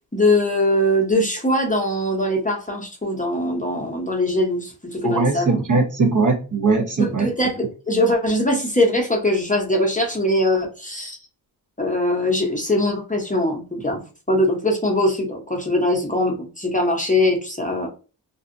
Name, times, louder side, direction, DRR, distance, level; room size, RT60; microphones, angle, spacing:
voice 1, 0.1-5.6 7.0-11.2 11.8-14.0 14.3-17.9, left 1 dB, 15° left, 0 dB, 0.8 m, -21 dB
voice 2, 5.0-7.3, right 4 dB, 40° right, 1 dB, 0.9 m, -20 dB
2.6 x 2.3 x 2.5 m, 0.35 s
cardioid pair, 45°, 46 cm